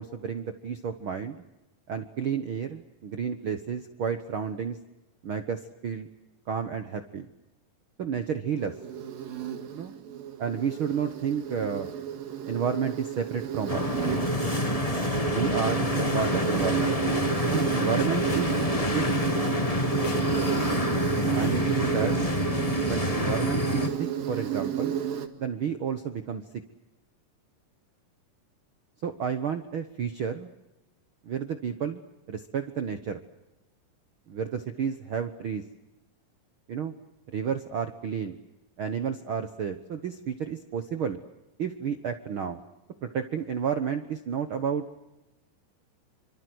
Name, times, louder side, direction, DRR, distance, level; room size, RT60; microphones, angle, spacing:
voice 1, 0.0-1.4 1.9-4.8 5.2-6.1 6.5-7.3 8.0-8.7 9.7-9.9 10.4-11.9 12.5-13.8 15.2-17.0 17.4-19.0 21.3-22.1 22.9-25.0 25.4-26.4 29.0-30.5 31.2-32.0 32.3-33.2 34.3-35.6 36.7-36.9 37.3-38.3 38.8-41.2 41.6-42.6 43.0-44.8, right 7 dB, 60° right, 8 dB, 1.3 m, -31 dB
Insect, 8.6-25.3, right 9 dB, 80° right, 3.6 m, -31 dB
sound 1, 13.7-23.9, left 2 dB, 20° left, 1.1 m, -28 dB
sound 2, 16.2-16.4 17.6-17.7 18.0-18.4 18.8-19.3 19.7-19.8 20.0-20.9 21.4-21.9, left 8 dB, 65° left, 3.0 m, -43 dB
27.0 x 25.5 x 8.0 m, 0.95 s
omnidirectional pair, 4.0 m